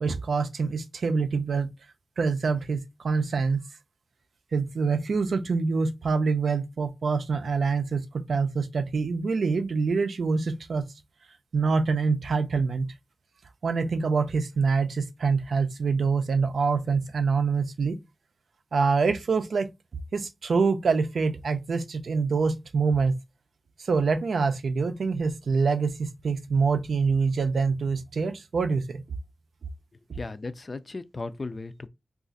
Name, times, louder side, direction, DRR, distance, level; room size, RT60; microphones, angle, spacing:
voice 1, 0.0-1.7 2.2-3.6 4.5-10.8 11.5-12.9 13.6-18.0 18.7-19.7 20.1-23.1 23.8-29.0, right 4 dB, 90° right, 0.4 m, -25 dB
voice 2, 30.2-31.9, left 3 dB, 40° left, 0.4 m, -36 dB
2.4 x 2.4 x 3.9 m
wide cardioid pair, 120°, 0 cm